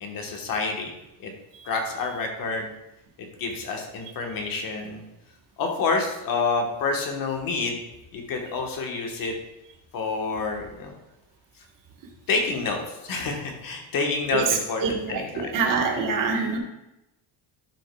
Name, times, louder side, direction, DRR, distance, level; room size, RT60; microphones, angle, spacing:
voice 1, 0.0-0.9 1.2-1.3 1.6-2.7 3.2-5.0 5.6-7.8 8.1-9.3 9.9-10.9 12.3-15.5, left 4 dB, 45° left, 2 dB, 1.3 m, -28 dB
voice 2, 14.3-16.6, right 5 dB, 45° right, 1 dB, 1.4 m, -26 dB
11.5 x 6.3 x 2.3 m, 0.90 s
cardioid pair, 170°, 46 cm